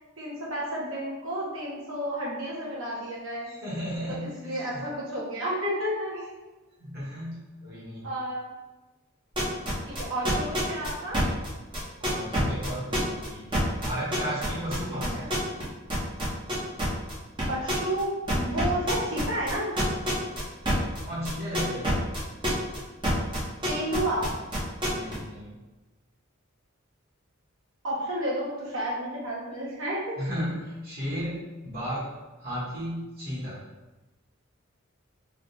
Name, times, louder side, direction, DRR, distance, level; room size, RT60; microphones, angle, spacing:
voice 1, 0.2-3.5 4.1-6.3 8.0-8.5 9.8-11.2 14.9-15.3 17.5-19.7 23.6-24.3 27.8-30.2, right 1 dB, 70° right, -5 dB, 1.2 m, -31 dB
voice 2, 3.4-4.8 6.8-8.0 12.0-13.4 13.8-15.3 21.0-22.0 24.9-25.6 30.2-32.1 32.4-33.6, equal, 45° right, -9 dB, 1.5 m, -34 dB
sound 1, 9.3-15.6 15.9-17.1 17.4-18.0 18.3-22.8 23.0-25.1, equal, 25° right, 1.0 m, -28 dB
3.6 x 2.5 x 4.2 m, 1.2 s
head